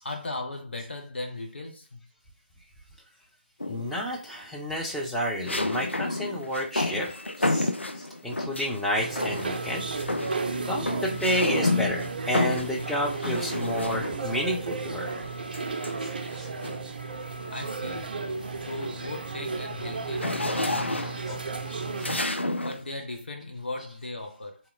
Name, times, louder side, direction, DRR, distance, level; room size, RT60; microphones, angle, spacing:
voice 1, 0.0-2.0 17.5-18.2 18.7-21.8 22.6-24.6, left 2 dB, 65° left, 0.8 m, -37 dB
sound 1, 3.6-4.1 5.5-8.8 9.2-9.7 10.0-14.4 15.5-16.9 17.4-17.7 18.1-22.8, left 2 dB, 85° left, 0.5 m, -31 dB
voice 2, 3.7-9.8 10.6-15.1 16.0-16.1 16.4-16.5, equal, ahead, 0.7 m, -30 dB
sound 2, 8.9-22.2, right 4 dB, 50° right, 0.6 m, -34 dB
3.6 x 2.9 x 3.8 m
figure-of-eight pair, 145°, 6 cm